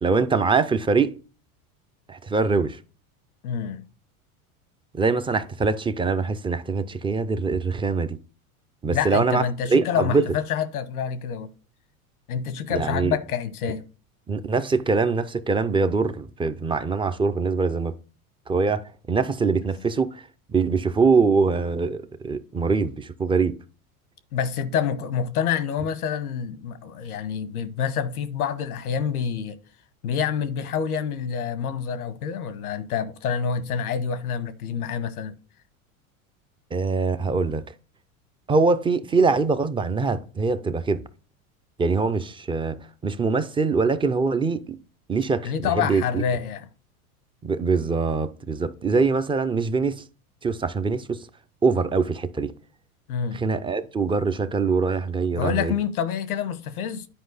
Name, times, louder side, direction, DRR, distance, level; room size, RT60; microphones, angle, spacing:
voice 1, 0.0-1.2 2.1-2.8 4.9-8.2 8.8-9.4 9.7-10.2 12.7-13.2 14.3-17.9 18.5-23.6 36.7-37.6 38.5-41.0 41.8-44.8 45.1-46.2 47.4-50.0 50.4-51.3 51.6-52.5 53.3-55.7, right 4 dB, 15° right, 0.4 m, -23 dB
voice 2, 3.4-3.9 8.9-11.5 12.3-13.9 24.3-29.6 30.0-35.3 45.4-46.6 53.1-53.4 55.4-57.1, left 7 dB, 85° left, 1.1 m, -27 dB
10.5 x 4.7 x 4.0 m
hypercardioid pair, 100°, 43 cm